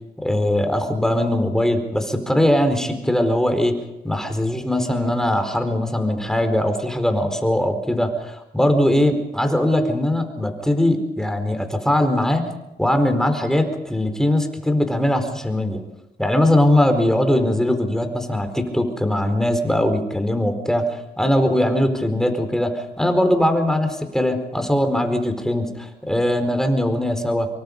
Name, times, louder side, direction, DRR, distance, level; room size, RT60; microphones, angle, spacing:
voice 1, 0.2-3.7 4.0-12.4 12.8-15.8 16.2-27.5, left 1 dB, 5° left, 6 dB, 4.5 m, -20 dB
25.5 x 24.0 x 5.5 m, 0.92 s
cardioid pair, 80°, 17 cm